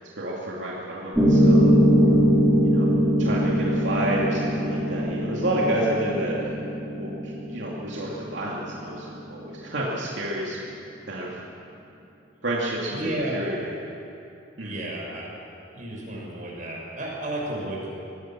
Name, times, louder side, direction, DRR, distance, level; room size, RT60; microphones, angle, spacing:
voice 1, 0.2-2.2 2.6-2.9 3.2-6.4 7.0-10.6 11.1-11.3 12.4-13.8 14.6-14.8, right 1 dB, 80° right, -4 dB, 2.7 m, -30 dB
Piano, 1.1-9.2, equal, 10° right, 3.5 m, -22 dB
voice 2, 12.9-13.4 14.6-15.3 15.7-17.9, right 1 dB, 45° right, -3 dB, 6.4 m, -32 dB
22.5 x 17.5 x 7.6 m, 2.7 s
head